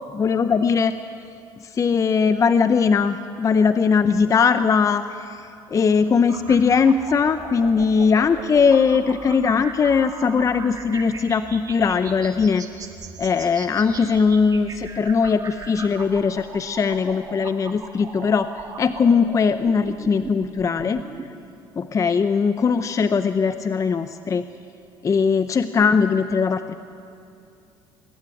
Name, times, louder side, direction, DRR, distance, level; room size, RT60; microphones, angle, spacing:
voice 1, 0.1-0.9 1.6-12.7 13.2-18.5 18.8-21.0 21.8-24.4 25.0-26.7, left 5 dB, 30° left, 11 dB, 0.6 m, -20 dB
sound 1, 6.3-21.3, right 5 dB, 35° right, 2.0 m, -39 dB
23.5 x 12.0 x 9.2 m, 2.6 s
supercardioid pair, 95°, 11 cm